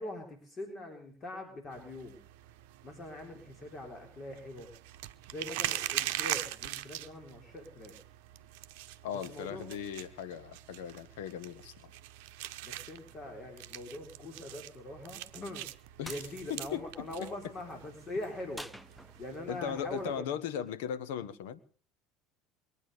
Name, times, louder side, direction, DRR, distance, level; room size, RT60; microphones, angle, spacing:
voice 1, 0.0-2.2 2.8-4.7 5.3-7.9 9.3-9.7 12.6-15.7 16.1-18.7 19.2-20.2, left 1 dB, 35° left, 4 dB, 3.9 m, -42 dB
sound 1, 1.7-20.2, right 15 dB, 70° right, 0.8 m, -42 dB
voice 2, 9.0-11.9 16.0-16.2 16.5-17.3 19.5-21.6, left 8 dB, 70° left, 12 dB, 1.3 m, -38 dB
sound 2, 16.0-16.3 18.5-19.5, equal, ahead, 0.8 m, -46 dB
22.5 x 9.2 x 6.7 m, 0.43 s
hypercardioid pair, 70°, 0 cm